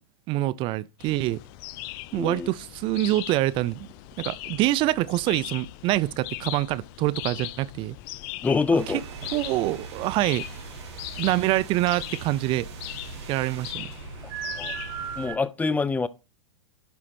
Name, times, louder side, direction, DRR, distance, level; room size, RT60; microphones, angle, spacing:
voice 1, 0.3-1.4 2.1-3.9 4.2-8.0 9.3-10.5 11.2-12.7 13.3-13.9, right 16 dB, 35° right, 0.4 m, -25 dB
sound 1, 1.0-15.3, left 17 dB, 50° left, 0.6 m, -40 dB
voice 2, 2.1-2.5 8.4-9.0 14.5-14.7 15.2-16.1, left 4 dB, 10° left, 0.6 m, -25 dB
sound 2, 8.8-15.4, right 8 dB, 65° right, 1.5 m, -39 dB
11.5 x 4.2 x 4.3 m
hypercardioid pair, 120°, 15 cm